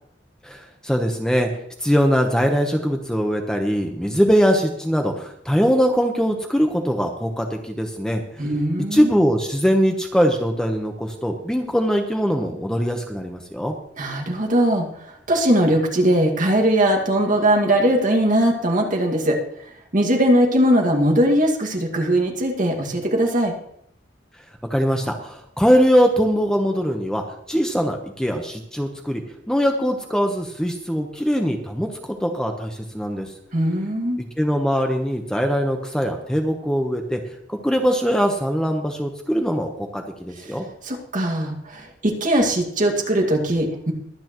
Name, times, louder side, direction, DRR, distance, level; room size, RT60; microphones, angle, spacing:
voice 1, 0.4-1.5 1.8-8.2 8.9-13.7 24.7-27.2 27.5-29.2 29.5-33.3 34.2-37.2 37.5-40.7, equal, 5° left, 3 dB, 1.0 m, -21 dB
voice 2, 8.4-9.1 14.0-19.4 19.9-23.5 33.5-34.2 40.4-40.5 40.8-43.9, right 1 dB, 45° right, 1 dB, 2.1 m, -20 dB
22.5 x 8.9 x 3.1 m, 0.72 s
head